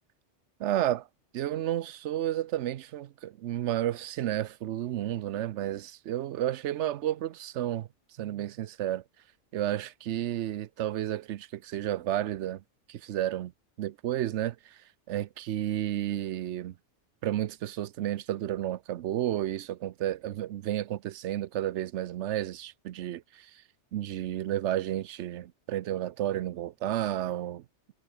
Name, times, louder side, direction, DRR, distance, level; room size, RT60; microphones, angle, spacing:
voice 1, 0.6-1.1 1.3-7.9 8.2-9.0 9.5-12.6 12.9-13.5 13.8-14.8 15.1-16.8 17.2-23.6 23.9-27.6, right 12 dB, 80° right, 0.9 m, -32 dB
omnidirectional pair, 1.2 m